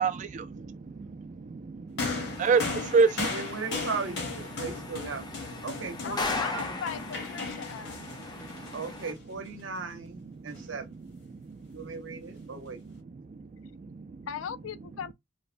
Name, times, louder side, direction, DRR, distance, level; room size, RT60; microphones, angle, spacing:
voice 1, 0.0-3.4 4.5-4.6 5.1-5.4 7.4-8.9 9.6-14.3, right 4 dB, 40° right, 0.3 m, -32 dB
sound 1, 2.0-9.5 10.5-10.6, left 4 dB, 60° left, 1.0 m, -37 dB
sound 2, 2.0-9.1, left 3 dB, 20° left, 0.5 m, -39 dB
voice 2, 3.3-5.2 5.6-6.8 8.7-11.0 11.7-12.8, right 4 dB, 70° right, 0.7 m, -37 dB
voice 3, 6.0-8.2 14.3-15.1, left 7 dB, 80° left, 0.3 m, -39 dB
3.0 x 2.1 x 2.4 m
head